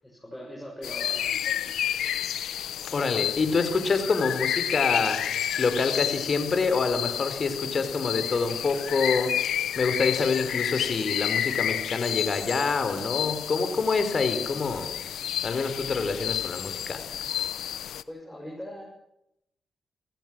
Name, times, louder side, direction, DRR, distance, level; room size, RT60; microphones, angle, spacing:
voice 1, 0.0-1.8 18.1-18.8, equal, 10° left, -2 dB, 7.5 m, -41 dB
sound 1, 0.8-18.0, left 10 dB, 85° left, 0.8 m, -30 dB
voice 2, 2.9-5.3 5.6-14.9 15.4-17.0, left 4 dB, 50° left, 9 dB, 4.4 m, -26 dB
28.0 x 15.0 x 6.3 m, 0.81 s
cardioid pair, 75°, 0 cm